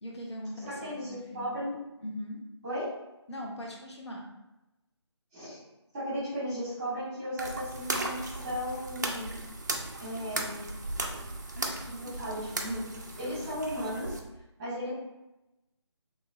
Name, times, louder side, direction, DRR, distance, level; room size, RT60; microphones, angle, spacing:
voice 1, 0.0-1.5 2.0-2.4 3.3-4.3, left 1 dB, 70° left, -1 dB, 0.8 m, -40 dB
voice 2, 0.7-1.7 2.6-2.9 5.3-5.6 5.9-9.3 10.0-10.7 11.8-12.8 13.2-14.1 14.6-14.9, equal, 10° right, -11 dB, 0.9 m, -35 dB
sound 1, 7.4-14.2, right 2 dB, 40° right, 0.3 m, -36 dB
3.3 x 2.9 x 2.3 m, 0.97 s
figure-of-eight pair, 155°, 15 cm